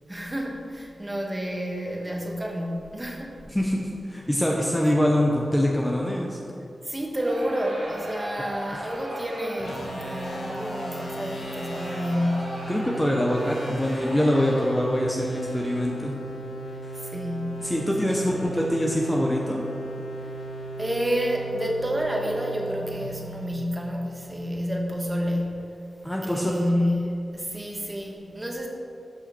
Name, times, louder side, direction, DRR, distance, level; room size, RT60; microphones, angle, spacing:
voice 1, 0.1-3.4 6.8-12.7 16.9-17.7 18.1-18.3 20.8-25.7 26.2-28.7, equal, 20° right, 0 dB, 1.3 m, -29 dB
voice 2, 3.5-6.4 8.7-8.8 12.7-16.1 16.8-17.0 17.6-19.6 26.0-26.6, equal, 10° left, -1 dB, 0.8 m, -24 dB
Crowd, 7.2-14.9, right 1 dB, 85° right, 2.4 m, -38 dB
sound 1, 9.6-24.2, right 1 dB, 85° left, 1.2 m, -37 dB
12.5 x 5.6 x 4.3 m, 2.5 s
wide cardioid pair, 115°, 0 cm